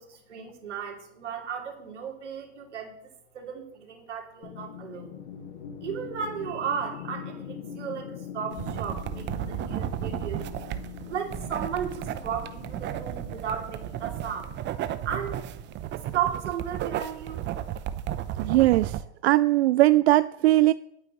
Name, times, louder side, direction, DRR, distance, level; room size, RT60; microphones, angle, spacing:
voice 1, 0.0-3.0 3.3-5.2 5.8-10.4 11.1-14.5 15.0-15.4 16.1-17.5, right 8 dB, 85° right, 3.0 m, -34 dB
sound 1, 4.4-16.6, left 8 dB, 75° left, 1.6 m, -43 dB
sound 2, 8.5-19.0, right 11 dB, 30° right, 0.9 m, -34 dB
voice 2, 18.4-20.7, right 16 dB, 65° right, 0.5 m, -20 dB
20.5 x 9.0 x 3.2 m
hypercardioid pair, 110°, 34 cm